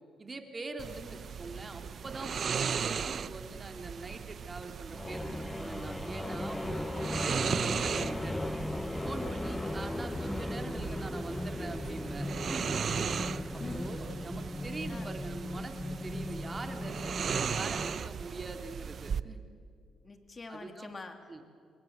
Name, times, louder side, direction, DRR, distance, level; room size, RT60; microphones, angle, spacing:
voice 1, 0.2-8.6 9.0-12.8 13.7-19.4 20.5-20.9 21.3-21.4, right 3 dB, 25° right, 5 dB, 2.8 m, -43 dB
sound 1, 0.8-19.2, right 7 dB, 50° right, 0.6 m, -37 dB
sound 2, 4.9-18.1, left 2 dB, 15° left, 0.9 m, -37 dB
voice 2, 13.5-13.9 14.9-15.2 20.0-21.4, left 3 dB, 30° left, 6 dB, 2.8 m, -45 dB
27.5 x 22.0 x 8.0 m, 2.4 s
cardioid pair, 90°, 0 cm